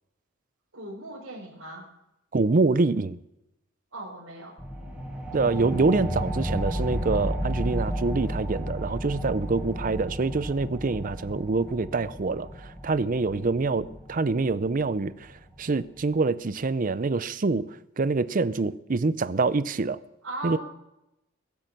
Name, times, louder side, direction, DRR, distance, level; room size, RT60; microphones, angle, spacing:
voice 1, 0.7-1.8 3.9-4.5 13.2-13.9 20.2-20.6, right 2 dB, 70° right, 4.7 m, -39 dB
voice 2, 2.3-3.2 5.3-20.0 20.4-20.6, right 3 dB, 40° right, 0.5 m, -26 dB
sound 1, 4.6-15.7, equal, 5° right, 2.7 m, -33 dB
21.5 x 8.4 x 6.6 m
head